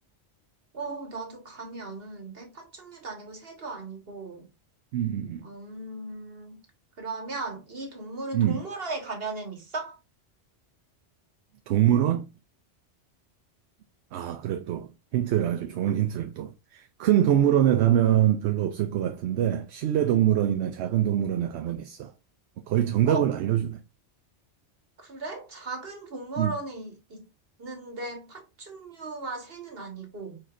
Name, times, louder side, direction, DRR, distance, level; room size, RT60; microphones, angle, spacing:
voice 1, 0.7-4.5 5.4-6.6 7.0-10.0 23.1-23.2 25.0-27.2 27.6-30.4, right 3 dB, 55° right, 1.8 m, -37 dB
voice 2, 4.9-5.5 8.3-8.6 11.7-12.3 14.1-22.1 22.7-23.8 26.4-26.5, right 11 dB, 70° right, 0.8 m, -24 dB
4.8 x 4.4 x 2.5 m
omnidirectional pair, 1.2 m